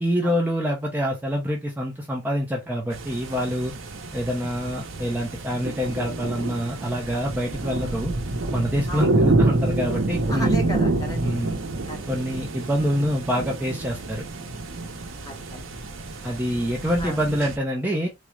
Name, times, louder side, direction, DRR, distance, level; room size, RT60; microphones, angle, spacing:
voice 1, 0.0-3.7 4.1-8.1 8.5-10.6 11.2-11.6 12.1-14.2 16.2-18.1, equal, 10° right, 0.5 m, -26 dB
sound 1, 2.9-17.6, right 2 dB, 85° right, 0.7 m, -27 dB
voice 2, 10.3-11.2 11.9-12.1 15.2-15.6 16.2-16.4 17.0-17.2, right 1 dB, 20° left, 0.9 m, -34 dB
3.6 x 2.0 x 3.0 m
head